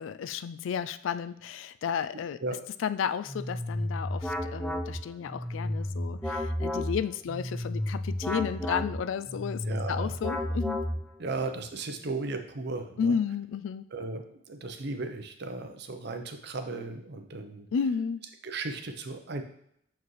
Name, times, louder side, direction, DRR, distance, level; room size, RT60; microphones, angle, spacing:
voice 1, 0.0-2.4 2.8-10.8 13.0-13.9 17.7-18.2, left 7 dB, 75° left, 14 dB, 0.3 m, -32 dB
sound 1, 3.3-11.3, left 1 dB, 5° left, 0.5 m, -32 dB
voice 2, 9.6-10.1 11.2-13.2 13.9-17.7 18.4-19.4, right 3 dB, 55° right, 7 dB, 0.7 m, -36 dB
7.0 x 4.6 x 3.1 m, 0.72 s
head